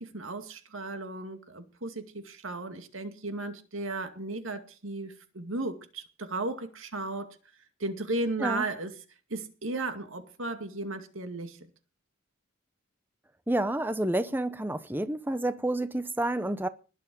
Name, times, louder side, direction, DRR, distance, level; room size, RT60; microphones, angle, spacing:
voice 1, 0.0-7.4 7.8-8.9 9.3-11.6, right 2 dB, 85° right, 2.3 m, -35 dB
voice 2, 13.5-16.7, right 1 dB, 10° right, 0.7 m, -29 dB
20.0 x 7.6 x 5.4 m
head